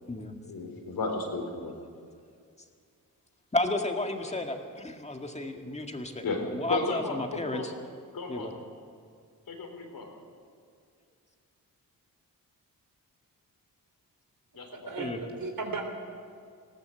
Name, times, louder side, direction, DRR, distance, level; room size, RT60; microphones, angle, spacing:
voice 1, 0.4-1.7 4.2-4.3 6.2-6.4 6.7-7.7 8.1-8.5 9.5-10.1 14.5-15.1, left 3 dB, 75° left, 2 dB, 4.0 m, -34 dB
voice 2, 3.5-7.7 8.3-8.5 15.0-15.2, left 2 dB, 20° left, 4 dB, 1.9 m, -32 dB
voice 3, 14.7-15.8, right 4 dB, 75° right, 4 dB, 3.6 m, -35 dB
19.5 x 17.5 x 7.9 m, 2.3 s
wide cardioid pair, 125°, 35 cm